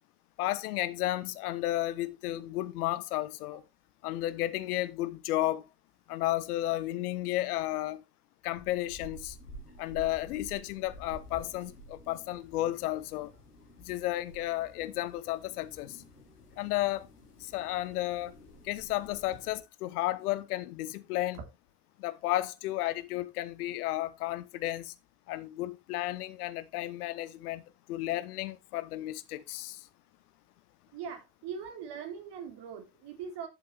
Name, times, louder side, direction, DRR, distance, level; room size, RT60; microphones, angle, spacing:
voice 1, 0.4-3.6 4.0-5.7 6.1-8.0 8.4-9.3 9.8-13.3 13.9-16.0 16.6-17.1 17.5-18.3 18.6-21.4 22.0-24.9 25.3-27.6 27.9-29.8, left 15 dB, 70° left, 0.9 m, -33 dB
sound 1, 8.5-19.6, equal, 90° left, 1.7 m, -51 dB
voice 2, 30.9-33.5, right 7 dB, 60° right, 3.2 m, -41 dB
10.5 x 7.9 x 3.3 m
figure-of-eight pair, 50°, 46 cm